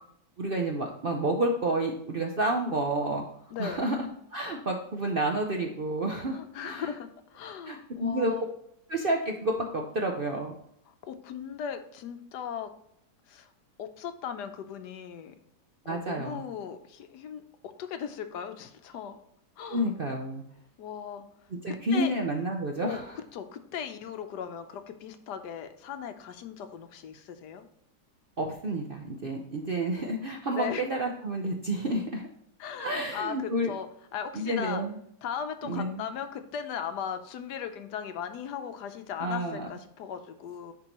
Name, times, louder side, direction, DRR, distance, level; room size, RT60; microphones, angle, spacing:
voice 1, 0.4-6.4 6.6-6.9 7.7-8.3 8.9-10.5 15.9-16.4 19.7-20.4 21.6-23.1 28.4-32.2 32.8-33.7 34.3-35.0 35.6-36.1 39.2-39.7, right 1 dB, 50° right, 1 dB, 0.6 m, -30 dB
voice 2, 3.5-3.8 6.3-8.5 10.9-12.7 13.3-13.5 13.8-15.3 15.8-19.2 19.6-19.9 20.8-21.2 21.7-22.1 22.8-23.0 23.3-27.7 30.5-30.8 32.6-33.9 34.1-34.8 35.2-40.7, left 8 dB, 75° left, 8 dB, 1.3 m, -38 dB
10.5 x 3.8 x 2.9 m, 0.73 s
omnidirectional pair, 1.8 m